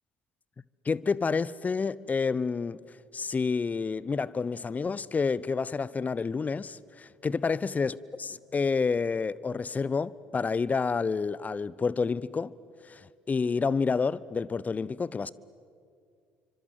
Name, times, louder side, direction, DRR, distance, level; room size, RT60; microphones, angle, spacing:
voice 1, 0.8-2.8 3.1-12.5 12.8-15.3, left 5 dB, 30° left, 0.9 m, -29 dB
29.5 x 25.0 x 7.9 m
hypercardioid pair, 55°, 5 cm